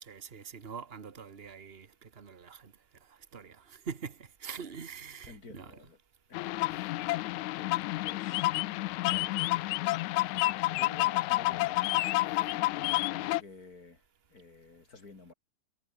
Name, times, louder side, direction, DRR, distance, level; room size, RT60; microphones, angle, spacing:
voice 1, 0.0-2.7 3.3-5.7, right 6 dB, 35° right, 0.9 m, -44 dB
voice 2, 5.3-6.0 6.3-10.1 10.4-14.0 14.3-15.3, left 3 dB, 30° left, 3.8 m, -52 dB
sound 1, 6.3-13.4, left 19 dB, 80° left, 2.0 m, -30 dB
omnidirectional pair, 3.4 m